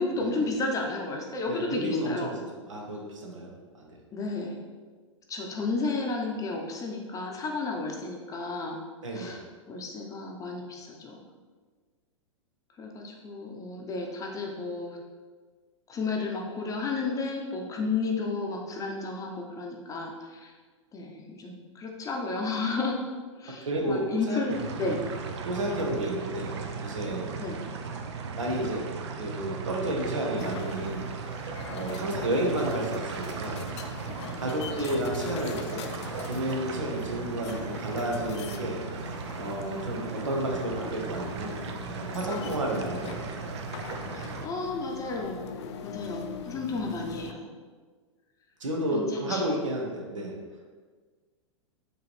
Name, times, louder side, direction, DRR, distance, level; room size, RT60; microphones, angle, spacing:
voice 1, 0.0-2.3 4.1-4.6 5.3-8.8 9.1-9.4 9.7-11.2 12.8-15.0 15.9-20.5 20.9-23.0 23.4-25.0 27.4-27.6 32.1-32.2 34.9-35.0 42.8-42.9 44.1-45.5 45.8-47.5 48.9-49.4, left 3 dB, 20° left, 0 dB, 0.7 m, -32 dB
voice 2, 1.4-3.9 9.0-9.4 23.6-24.4 24.8-24.9 25.4-26.5 26.8-27.3 28.4-28.9 29.2-31.1 31.7-33.6 34.4-35.8 36.3-38.8 39.4-41.6 41.9-43.6 48.6-50.3, right 1 dB, 75° right, 0 dB, 1.0 m, -31 dB
sound 1, 24.5-44.5, right 5 dB, 60° right, 0.5 m, -37 dB
sound 2, 30.4-47.3, left 7 dB, 60° left, 0.4 m, -41 dB
4.9 x 3.1 x 3.2 m, 1.5 s
hypercardioid pair, 105°, 16 cm